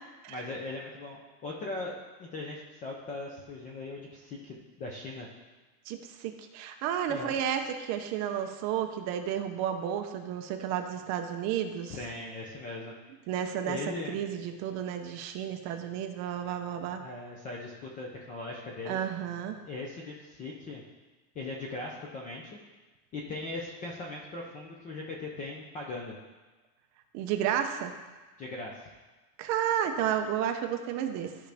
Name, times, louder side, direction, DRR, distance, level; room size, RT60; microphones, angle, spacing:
voice 1, 0.3-5.3 7.1-7.4 11.9-12.9 13.7-14.2 17.0-19.0 19.6-20.8 21.4-22.6 23.1-26.2 28.4-28.9, left 2 dB, 20° left, -2 dB, 0.3 m, -39 dB
voice 2, 5.9-11.9 13.3-17.0 18.9-19.6 27.1-27.9 29.4-31.4, right 9 dB, 40° right, 6 dB, 0.5 m, -32 dB
13.0 x 5.1 x 3.4 m, 1.3 s
cardioid pair, 170°, 46 cm